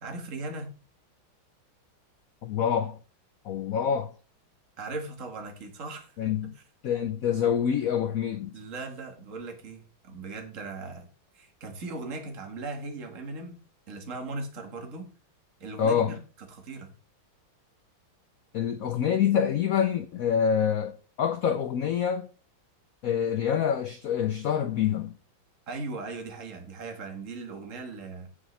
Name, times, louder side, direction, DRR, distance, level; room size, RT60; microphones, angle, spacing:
voice 1, 0.0-0.7 4.8-6.2 6.4-6.5 8.5-11.1 11.3-13.6 13.9-15.1 15.6-16.2 16.5-16.9 25.7-28.3, right 3 dB, 40° right, 2.0 m, -38 dB
voice 2, 2.4-3.0 3.4-4.1 6.2-6.5 6.8-8.5 15.8-16.2 18.5-22.3 23.0-25.1, left 8 dB, 85° left, 0.7 m, -26 dB
16.0 x 5.5 x 3.3 m
omnidirectional pair, 2.2 m